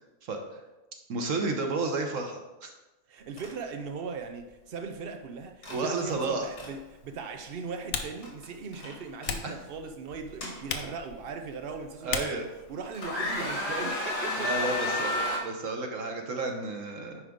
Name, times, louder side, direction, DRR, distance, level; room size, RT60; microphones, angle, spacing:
voice 1, 0.2-0.6 1.1-2.7 5.7-6.5 9.4-9.5 12.0-12.5 14.4-15.1 15.4-17.2, right 3 dB, 55° right, 1.2 m, -31 dB
voice 2, 3.1-12.4 12.7-15.2, right 5 dB, 75° right, 0.5 m, -39 dB
sound 1, 3.4-3.5 3.8-4.0 5.6-5.8 6.3-6.7 8.2-8.4 8.7-9.3 10.1-11.1 11.7-11.8 12.4-12.7 12.9-15.4, left 1 dB, 90° left, 2.8 m, -31 dB
Typing, 6.1-13.6, left 6 dB, 55° left, 0.9 m, -40 dB
9.5 x 5.1 x 3.6 m
omnidirectional pair, 1.7 m